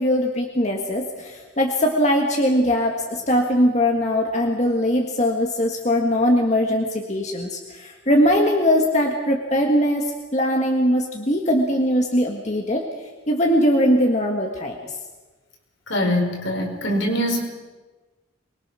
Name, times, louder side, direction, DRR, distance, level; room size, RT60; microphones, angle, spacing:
voice 1, 0.0-12.9 13.3-15.0, equal, 35° left, 1 dB, 1.8 m, -21 dB
voice 2, 15.9-17.5, equal, 70° left, 2 dB, 4.9 m, -23 dB
24.0 x 22.0 x 6.3 m, 1.3 s
head